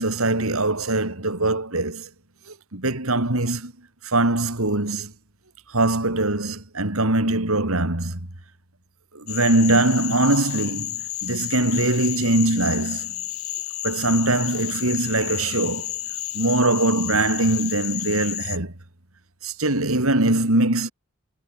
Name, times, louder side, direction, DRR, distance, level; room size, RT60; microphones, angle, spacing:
voice 1, 0.0-2.1 2.5-3.7 4.0-5.1 5.7-8.3 9.1-13.1 13.8-15.9 16.3-18.7 19.4-20.9, right 2 dB, 70° right, 3.5 m, -22 dB
Cricket / Frog, 9.3-18.6, left 14 dB, 70° left, 6.2 m, -31 dB
head